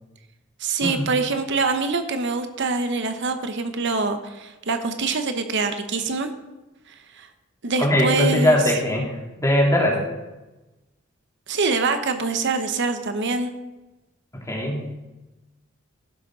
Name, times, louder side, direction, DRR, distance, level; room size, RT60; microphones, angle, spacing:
voice 1, 0.6-6.3 6.9-7.3 7.6-8.6 11.5-13.5, right 3 dB, 60° right, 8 dB, 0.9 m, -25 dB
voice 2, 7.8-9.1 9.4-10.0 14.5-14.9, left 1 dB, 15° left, -2 dB, 2.9 m, -20 dB
15.0 x 6.4 x 6.0 m, 1.1 s
head